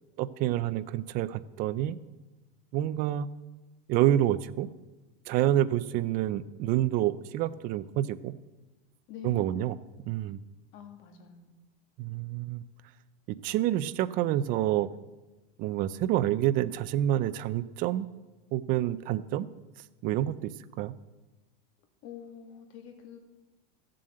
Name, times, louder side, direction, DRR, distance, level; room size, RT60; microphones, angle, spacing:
voice 1, 0.2-2.0 2.7-3.3 3.9-4.7 5.3-8.3 9.2-9.8 10.0-10.4 12.0-12.6 13.3-14.9 15.6-18.1 18.5-19.5 20.0-20.9, right 13 dB, 30° right, 15 dB, 0.4 m, -28 dB
voice 2, 9.1-9.6 10.7-11.5 21.8-23.2, left 8 dB, 40° left, 5 dB, 2.0 m, -46 dB
14.0 x 7.6 x 7.7 m, 1.1 s
supercardioid pair, 155°, 30 cm